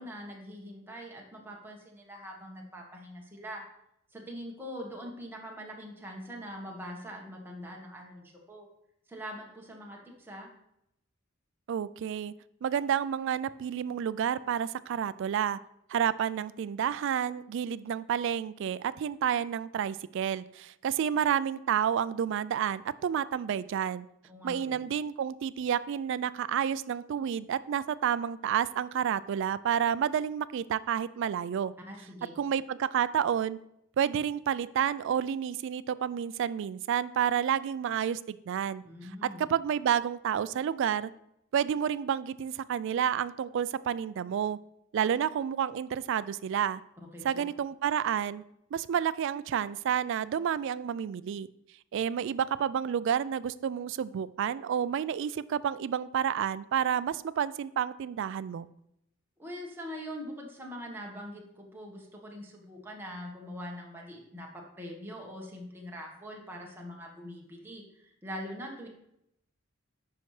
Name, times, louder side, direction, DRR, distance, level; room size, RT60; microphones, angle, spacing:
voice 1, 0.0-3.7 4.1-8.7 9.1-10.5 24.3-24.8 31.9-32.4 38.8-39.4 47.0-47.4 59.4-68.9, equal, 10° right, -1 dB, 1.3 m, -43 dB
voice 2, 11.7-12.3 12.6-15.6 15.9-24.1 24.4-31.7 32.4-33.6 34.0-38.8 39.2-41.1 41.5-44.6 44.9-46.8 47.2-48.4 48.7-51.5 51.9-58.7, right 8 dB, 60° right, 16 dB, 0.3 m, -30 dB
9.4 x 5.6 x 3.2 m, 0.79 s
head